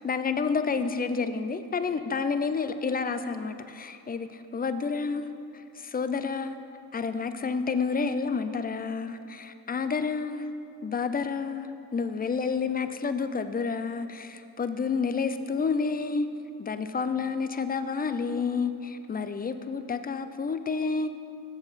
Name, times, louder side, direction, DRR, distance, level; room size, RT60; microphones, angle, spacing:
voice 1, 0.0-5.3 5.5-6.6 6.9-10.5 10.8-16.3 16.6-21.1, left 5 dB, 20° left, 10 dB, 0.3 m, -29 dB
8.0 x 6.8 x 4.0 m, 2.5 s
cardioid pair, 70°, 45 cm